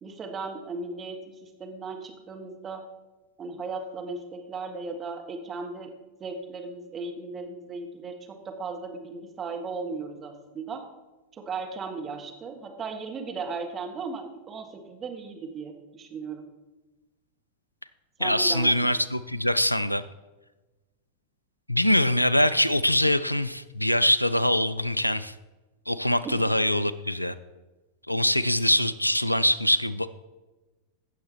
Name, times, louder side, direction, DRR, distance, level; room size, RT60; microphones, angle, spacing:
voice 1, 0.0-2.9 3.4-5.9 6.2-10.8 11.3-16.5 18.2-18.9 26.2-26.5, right 4 dB, 25° right, 3 dB, 1.4 m, -36 dB
voice 2, 18.2-20.0 21.7-25.3 25.9-27.3 28.1-30.1, left 1 dB, 90° left, 16 dB, 0.4 m, -23 dB
16.0 x 6.7 x 3.3 m, 1.2 s
figure-of-eight pair, 90°, 0 cm